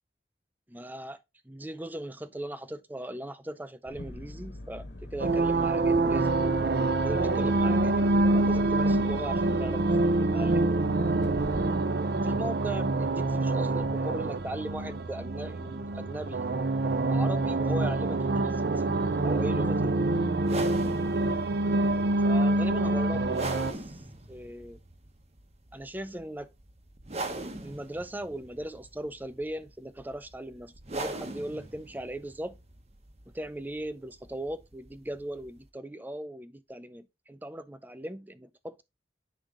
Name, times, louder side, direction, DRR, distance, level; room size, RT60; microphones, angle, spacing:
voice 1, 0.7-6.4 7.0-9.8 10.3-10.8 12.2-16.5 17.1-20.0 22.2-24.0 24.3-24.8 25.7-26.5 27.6-32.6 33.3-38.8, right 1 dB, 10° right, 0.4 m, -38 dB
sound 1, 3.9-11.8, left 1 dB, 90° left, 2.0 m, -43 dB
sound 2, 5.2-23.7, right 2 dB, 60° right, 0.5 m, -26 dB
sound 3, 20.4-35.7, right 2 dB, 35° right, 1.1 m, -41 dB
9.9 x 3.3 x 3.8 m
head